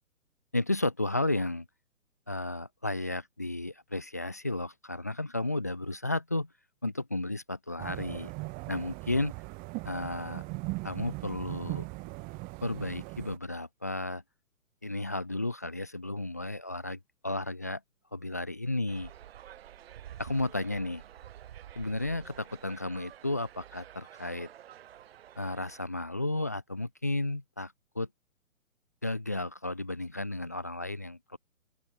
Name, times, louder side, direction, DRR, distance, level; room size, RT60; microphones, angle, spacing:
voice 1, 0.5-1.7 2.3-6.5 6.8-8.3 8.7-9.3 9.8-10.4 10.8-11.9 12.6-14.2 14.8-17.8 18.1-19.1 20.2-21.0 21.8-24.5 25.4-28.1 29.0-31.4, left 2 dB, 15° left, 0.4 m, -33 dB
sound 1, 7.8-13.4, right 27 dB, 20° right, 2.3 m, -39 dB
sound 2, 18.9-25.9, right 11 dB, 45° right, 5.2 m, -50 dB
open air
hypercardioid pair, 150°, 42 cm